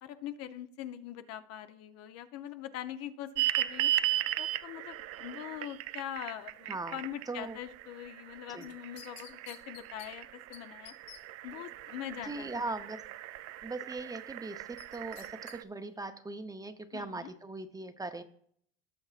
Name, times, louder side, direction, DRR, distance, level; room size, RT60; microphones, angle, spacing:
voice 1, 0.0-3.9 4.4-10.9 11.4-12.7 16.9-17.3, left 11 dB, 55° left, 10 dB, 0.7 m, -43 dB
sound 1, 3.4-15.6, right 14 dB, 55° right, 0.5 m, -37 dB
voice 2, 7.3-7.6 8.5-8.7 12.2-13.0 13.6-18.2, right 3 dB, 10° right, 8 dB, 0.7 m, -40 dB
sound 2, 8.6-10.1 10.5-10.6 10.9-11.2 14.8-15.6 16.0-16.1, left 10 dB, 90° left, 1.2 m, -50 dB
17.5 x 6.8 x 2.4 m, 0.63 s
supercardioid pair, 120°, 29 cm